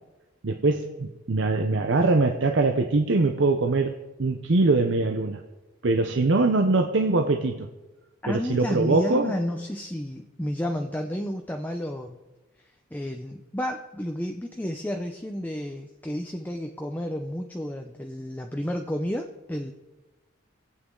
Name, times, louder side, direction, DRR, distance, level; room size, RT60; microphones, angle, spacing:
voice 1, 0.4-5.4 5.8-7.7 8.3-9.4, right 3 dB, 65° right, 5 dB, 0.7 m, -23 dB
voice 2, 8.2-12.2 12.9-19.7, equal, 10° left, 4 dB, 0.6 m, -31 dB
23.0 x 8.3 x 3.8 m, 1.1 s
head